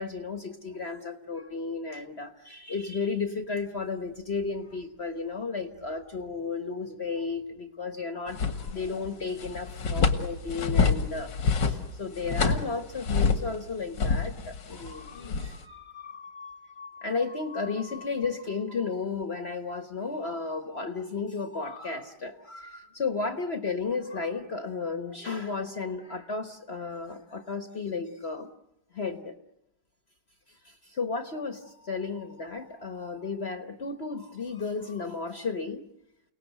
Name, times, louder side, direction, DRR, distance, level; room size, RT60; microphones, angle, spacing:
voice 1, 0.0-28.5 28.9-29.4 30.6-35.9, left 4 dB, 40° left, 6 dB, 1.3 m, -34 dB
sound 1, 8.3-9.1 9.4-13.6 14.0-15.6, left 5 dB, 85° left, 2.3 m, -27 dB
30.0 x 18.5 x 8.1 m, 0.88 s
omnidirectional pair, 1.9 m